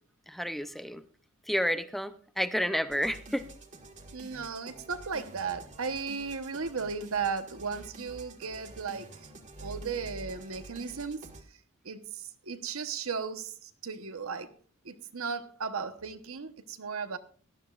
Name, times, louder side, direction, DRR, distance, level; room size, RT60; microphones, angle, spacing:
voice 1, 0.3-1.0 1.5-3.5, equal, ahead, 0.6 m, -30 dB
sound 1, 2.9-11.4, right 2 dB, 35° right, 1.7 m, -48 dB
voice 2, 4.1-9.1 9.6-11.3 11.8-14.5 14.8-17.2, right 5 dB, 70° right, 1.0 m, -35 dB
18.5 x 12.5 x 2.4 m
head